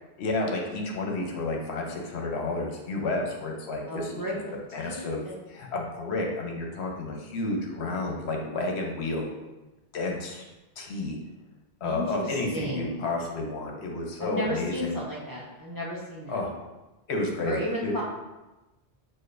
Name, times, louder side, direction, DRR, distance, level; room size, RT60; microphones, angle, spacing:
voice 1, 0.2-4.2 4.7-9.3 9.9-10.4 10.8-11.2 11.8-15.0 16.3-16.5 17.1-17.5 17.8-18.0, left 2 dB, 75° left, 0 dB, 1.0 m, -31 dB
voice 2, 3.9-5.3 11.8-13.0 14.2-16.4 17.4-18.0, equal, 25° right, -6 dB, 0.5 m, -33 dB
6.3 x 2.1 x 2.5 m, 1.1 s
omnidirectional pair, 1.1 m